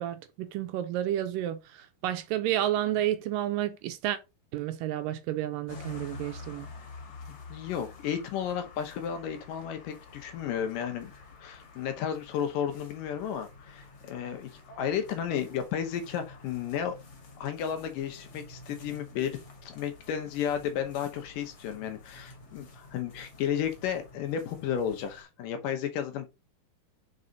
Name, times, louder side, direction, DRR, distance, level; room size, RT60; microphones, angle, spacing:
voice 1, 0.0-4.2 4.5-6.7, right 12 dB, 80° right, 2.1 m, -31 dB
sound 1, 5.7-25.2, left 3 dB, 45° left, 2.3 m, -49 dB
voice 2, 7.5-11.1 11.4-17.0 17.4-26.3, left 8 dB, 75° left, 2.4 m, -33 dB
5.4 x 4.9 x 4.0 m
omnidirectional pair, 4.2 m